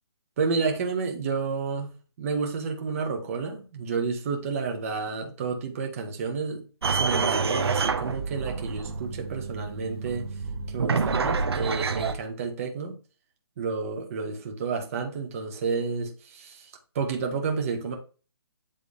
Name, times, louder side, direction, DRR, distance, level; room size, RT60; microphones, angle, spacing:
voice 1, 0.4-6.6 6.9-10.3 10.7-13.0 13.6-16.7 16.9-17.9, right 5 dB, 35° right, 1.6 m, -30 dB
sound 1, 6.8-12.1, right 5 dB, 70° right, 1.1 m, -28 dB
8.8 x 3.7 x 3.6 m
hypercardioid pair, 165°, 13 cm